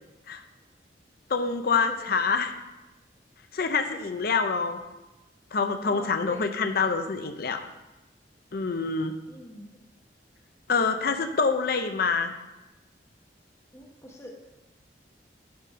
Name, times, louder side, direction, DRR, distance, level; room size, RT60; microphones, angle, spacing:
voice 1, 1.3-2.5 3.5-4.8 5.5-7.6 8.5-9.1 10.7-12.3, left 5 dB, 60° left, 8 dB, 0.6 m, -26 dB
voice 2, 1.9-2.3 3.9-4.0 5.9-6.5 9.3-9.8 13.7-14.4, left 1 dB, 15° left, -1 dB, 1.1 m, -45 dB
10.5 x 4.2 x 6.3 m, 1.0 s
head